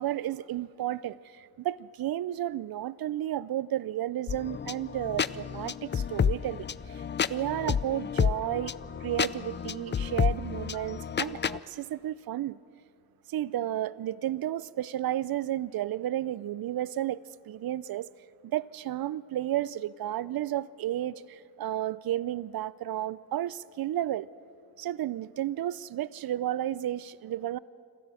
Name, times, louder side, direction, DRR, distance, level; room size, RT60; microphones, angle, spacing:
voice 1, 0.0-12.6 13.3-18.1 18.4-24.3 24.8-27.6, right 13 dB, 65° right, 20 dB, 0.6 m, -32 dB
sound 1, 4.3-11.6, left 7 dB, 30° left, 0.4 m, -30 dB
26.5 x 13.0 x 7.7 m, 2.7 s
cardioid pair, 65°, 40 cm